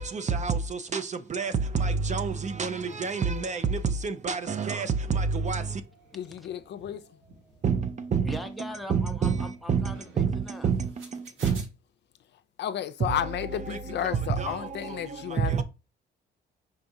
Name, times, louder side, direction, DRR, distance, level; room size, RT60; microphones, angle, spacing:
sound 1, 1.4-11.7, right 3 dB, 80° right, 1.6 m, -53 dB
voice 1, 1.8-3.8 4.0-4.9 5.1-5.6 7.6-7.8 8.1-8.2 8.9-9.4 9.7-9.8 10.2-10.3 10.6-10.8 11.4-11.5 14.4-14.5, right 5 dB, 35° right, 0.5 m, -26 dB
voice 2, 5.4-5.7 8.2-10.7, equal, ahead, 0.7 m, -41 dB
voice 3, 6.1-7.0 12.6-15.6, left 10 dB, 60° left, 0.5 m, -32 dB
4.6 x 3.7 x 2.7 m
cardioid pair, 90°, 20 cm